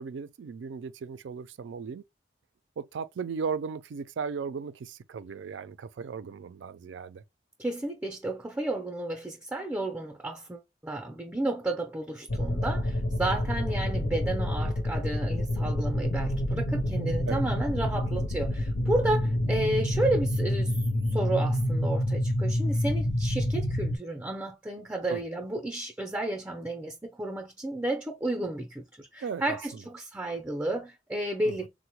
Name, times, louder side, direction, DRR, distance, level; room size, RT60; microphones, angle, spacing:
voice 1, 0.0-2.0 2.8-7.2 17.3-17.4 25.1-25.5 29.2-29.8 31.5-31.6, right 5 dB, 75° right, 0.4 m, -36 dB
voice 2, 7.6-20.8 21.1-31.7, right 1 dB, 10° right, 0.5 m, -32 dB
sound 1, 12.3-24.0, left 1 dB, 75° left, 0.6 m, -28 dB
3.7 x 2.1 x 2.9 m
head